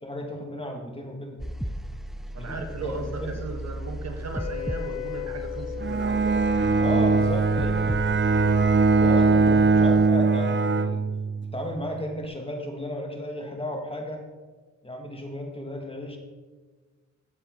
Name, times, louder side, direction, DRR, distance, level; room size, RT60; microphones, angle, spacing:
voice 1, 0.0-1.4 2.4-3.5 6.8-7.9 9.0-11.0 11.5-14.2 14.8-16.2, equal, 20° left, 2 dB, 2.6 m, -34 dB
sound 1, 1.4-10.1, right 1 dB, ahead, 0.5 m, -35 dB
voice 2, 2.3-6.8, right 3 dB, 55° right, 5 dB, 1.5 m, -37 dB
Wind instrument woodwind instrument, 4.3-10.9, left 17 dB, 60° left, 1.2 m, -35 dB
Bowed string instrument, 5.8-11.6, right 4 dB, 40° right, 0.7 m, -21 dB
15.5 x 8.0 x 4.3 m, 1.4 s
supercardioid pair, 55°, 31 cm